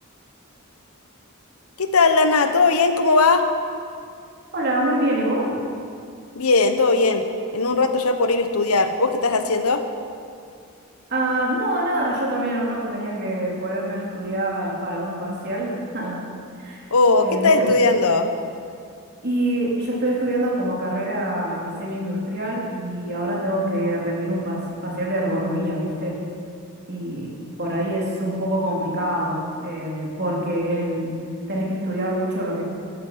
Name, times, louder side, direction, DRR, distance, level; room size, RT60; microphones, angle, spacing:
voice 1, 1.8-3.4 6.3-7.3 7.5-9.8 16.9-18.3, left 3 dB, 90° left, 7 dB, 1.0 m, -18 dB
voice 2, 4.5-5.5 11.1-16.2 16.6-16.8 17.2-17.7 19.2-26.2 26.9-27.3 27.6-31.1 31.5-32.6, right 1 dB, 50° right, -4 dB, 3.6 m, -25 dB
13.5 x 12.5 x 5.7 m, 2.3 s
head